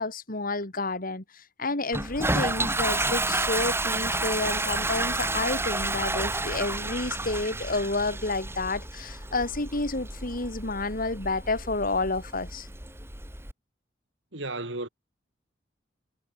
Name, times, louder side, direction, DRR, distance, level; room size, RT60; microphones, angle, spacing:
voice 1, 0.0-12.7, left 3 dB, 50° left, 3.9 m, -30 dB
Toilet flush, 1.9-13.5, right 2 dB, 15° right, 4.5 m, -30 dB
voice 2, 14.3-14.9, right 2 dB, 70° right, 4.2 m, -33 dB
head